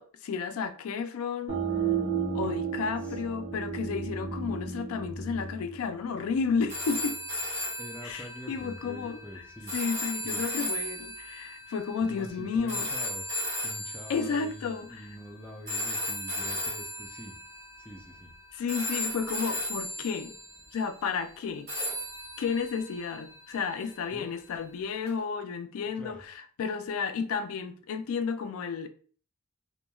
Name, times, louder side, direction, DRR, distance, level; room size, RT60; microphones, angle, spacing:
voice 1, 0.0-1.6 2.3-7.2 8.0-9.2 9.7-12.9 14.1-15.0 18.5-20.3 20.7-21.7 22.4-28.9, left 5 dB, 80° left, 0.3 m, -32 dB
sound 1, 1.5-6.9, right 6 dB, 85° right, 0.7 m, -33 dB
sound 2, 6.7-14.9 15.7-18.4 18.7-20.8 21.7-23.9 25.1-25.2, left 1 dB, 50° right, 1.4 m, -36 dB
voice 2, 7.8-9.7 10.2-10.4 12.0-13.3 13.6-17.4 17.8-18.3 24.1-24.4 25.9-26.2, equal, 5° left, 0.3 m, -44 dB
2.9 x 2.2 x 2.2 m
head